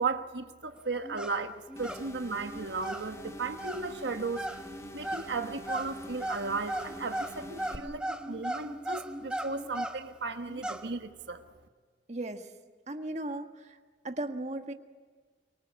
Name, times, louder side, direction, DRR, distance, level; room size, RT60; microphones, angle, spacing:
voice 1, 0.0-4.5 4.9-11.5, right 4 dB, 75° right, 7 dB, 1.3 m, -35 dB
sound 1, 1.0-1.4 1.7-2.1 2.4-10.1 10.5-10.9, right 1 dB, 5° right, 1.2 m, -38 dB
sound 2, 1.8-7.8, left 1 dB, 15° left, 1.8 m, -47 dB
voice 2, 12.1-12.5 12.9-13.8 14.0-14.7, right 1 dB, 40° right, 6 dB, 1.6 m, -36 dB
24.5 x 24.0 x 8.3 m, 1.5 s
head